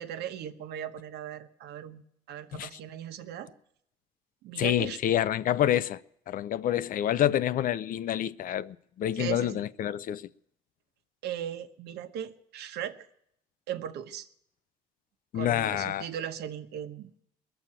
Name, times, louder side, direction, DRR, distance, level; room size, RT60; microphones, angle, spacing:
voice 1, 0.0-3.5 4.4-5.0 9.1-9.6 11.2-13.0 13.7-14.3 15.3-17.2, right 10 dB, 75° right, 1.1 m, -38 dB
voice 2, 4.6-6.0 6.3-10.3 15.3-16.1, left 11 dB, 55° left, 0.5 m, -28 dB
21.0 x 7.0 x 8.9 m
cardioid pair, 110°, 17 cm